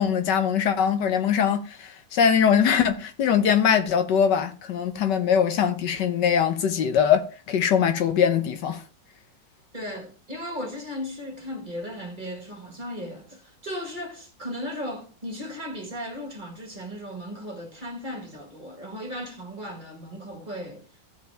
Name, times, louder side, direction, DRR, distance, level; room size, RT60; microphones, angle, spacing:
voice 1, 0.0-8.8, left 8 dB, 70° left, 1.4 m, -22 dB
voice 2, 9.7-20.9, equal, 25° right, 1.6 m, -36 dB
15.5 x 5.2 x 3.3 m
omnidirectional pair, 2.0 m